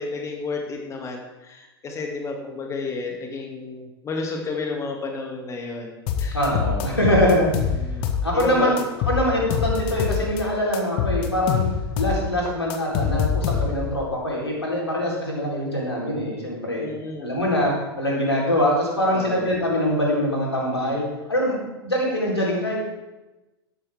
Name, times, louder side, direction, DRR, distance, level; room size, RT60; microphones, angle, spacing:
voice 1, 0.0-6.4 7.7-8.1 8.3-8.9 16.8-17.4 19.1-19.5, left 3 dB, 20° left, 2 dB, 2.6 m, -31 dB
sound 1, 6.1-8.4 8.8-10.4 10.7-14.0, left 7 dB, 40° left, 1.5 m, -24 dB
voice 2, 6.3-7.5 8.2-8.7 9.1-11.6 12.0-16.8 17.2-21.0 21.3-21.6 21.8-22.8, left 1 dB, 85° left, -4 dB, 4.4 m, -23 dB
13.0 x 12.5 x 3.7 m, 1.1 s
figure-of-eight pair, 90°, 13 cm